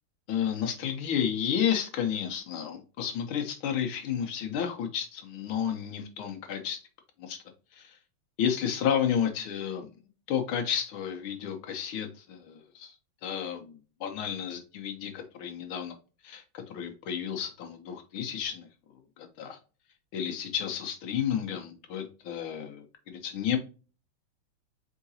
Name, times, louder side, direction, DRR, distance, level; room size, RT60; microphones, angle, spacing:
voice 1, 0.3-6.8 7.2-7.4 7.7-8.0 8.4-9.9 10.3-12.9 13.2-15.9 16.2-18.7 19.2-19.6 20.1-23.6, left 8 dB, 75° left, 5 dB, 1.6 m, -31 dB
4.7 x 3.7 x 2.6 m, 0.35 s
omnidirectional pair, 2.3 m